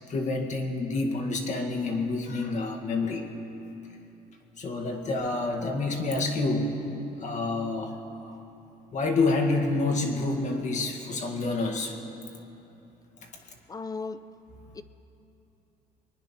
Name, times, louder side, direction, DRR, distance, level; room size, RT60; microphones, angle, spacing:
voice 1, 0.1-3.3 4.6-6.8 7.2-8.0 8.2-8.4 8.9-12.0, left 3 dB, 45° left, 1.9 m, -28 dB
voice 2, 13.7-14.3 14.7-14.8, left 4 dB, 20° left, 0.5 m, -36 dB
23.0 x 9.8 x 5.9 m
cardioid pair, 110°, 17 cm